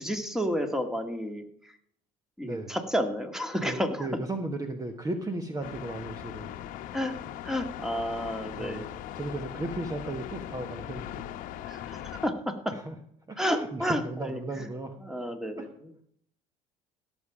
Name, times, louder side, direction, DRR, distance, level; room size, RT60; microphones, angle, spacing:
voice 1, 0.0-1.4 2.4-4.1 6.9-7.2 7.4-8.9 11.7-12.7 13.4-14.7 15.0-16.0, equal, 5° right, 6 dB, 2.0 m, -31 dB
voice 2, 2.4-2.8 3.6-6.5 8.5-8.8 9.1-11.3 12.7-12.9 13.3-15.0 15.6-15.7, right 2 dB, 25° right, 6 dB, 1.4 m, -35 dB
sound 1, 5.6-12.3, left 12 dB, 70° left, 1.0 m, -40 dB
17.0 x 7.3 x 5.0 m, 0.67 s
supercardioid pair, 80°, 15 cm